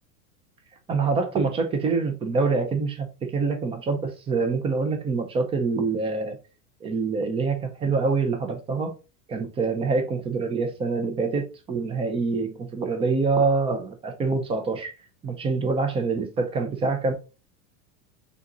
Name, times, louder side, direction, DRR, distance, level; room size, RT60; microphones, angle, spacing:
voice 1, 0.9-6.4 6.8-9.0 9.3-14.9 15.2-17.1, right 4 dB, 15° right, 0.4 m, -25 dB
3.8 x 2.8 x 3.6 m
supercardioid pair, 140°, 47 cm